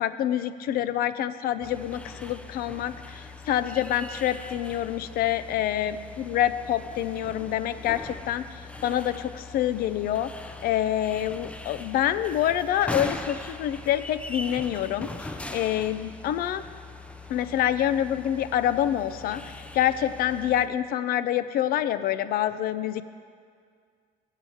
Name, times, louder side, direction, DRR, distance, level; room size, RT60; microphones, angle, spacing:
voice 1, 0.0-10.3 10.6-16.7 17.3-23.0, left 11 dB, 70° left, 13 dB, 0.4 m, -27 dB
sound 1, 1.6-20.7, left 2 dB, 5° left, 0.4 m, -41 dB
7.6 x 7.4 x 7.1 m, 2.1 s
cardioid pair, 130°, 16 cm